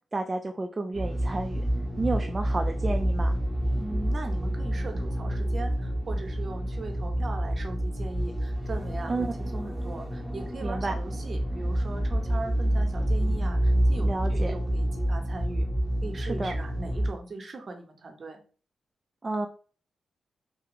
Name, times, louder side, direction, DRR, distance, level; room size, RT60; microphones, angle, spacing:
voice 1, 0.1-1.6 2.0-3.4 9.1-9.3 10.6-10.9 14.0-14.5 16.2-16.5 19.2-19.5, right 2 dB, 35° right, 4 dB, 0.3 m, -31 dB
sound 1, 0.9-17.1, right 1 dB, 15° right, 0.9 m, -28 dB
voice 2, 3.8-15.7 16.0-18.4, right 2 dB, 50° right, 4 dB, 0.9 m, -39 dB
3.4 x 2.3 x 2.9 m, 0.40 s
supercardioid pair, 45°, 0 cm